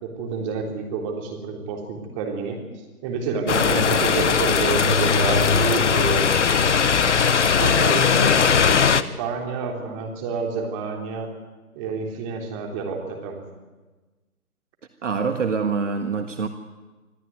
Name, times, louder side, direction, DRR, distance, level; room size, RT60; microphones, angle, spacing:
voice 1, 0.0-2.6 3.0-7.2 7.6-11.3 11.7-13.4, right 5 dB, 20° right, 1 dB, 3.8 m, -29 dB
sound 1, 3.5-9.0, left 6 dB, 50° left, 1.1 m, -19 dB
voice 2, 15.0-16.5, right 5 dB, 55° right, 7 dB, 1.7 m, -25 dB
25.5 x 15.0 x 9.4 m, 1.2 s
figure-of-eight pair, 145°, 45 cm